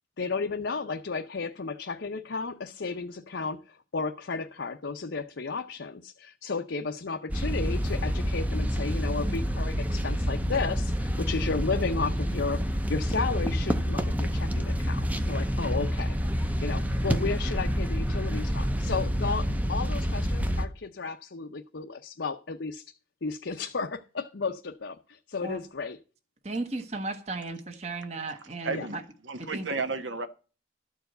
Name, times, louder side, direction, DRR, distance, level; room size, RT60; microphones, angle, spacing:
voice 1, 0.2-12.6 12.9-22.8 23.2-26.0 28.7-28.9, left 4 dB, 65° left, 0.7 m, -33 dB
sound 1, 7.3-20.7, equal, 10° right, 0.7 m, -28 dB
voice 2, 26.4-29.0 29.4-29.7, right 2 dB, 35° right, 1.1 m, -35 dB
voice 3, 28.6-29.0 29.2-30.3, right 3 dB, 75° right, 1.3 m, -32 dB
13.0 x 4.7 x 7.9 m
head